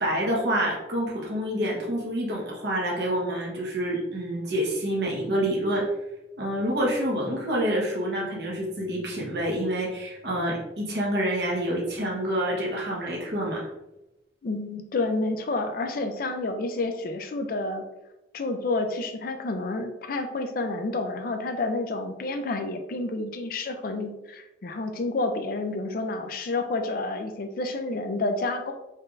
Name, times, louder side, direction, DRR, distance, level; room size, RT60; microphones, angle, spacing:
voice 1, 0.0-5.8 6.4-13.7, right 1 dB, 60° right, -3 dB, 1.1 m, -27 dB
voice 2, 14.4-17.8 18.3-28.7, left 2 dB, 50° left, 6 dB, 0.4 m, -29 dB
4.4 x 3.2 x 2.5 m, 0.94 s
head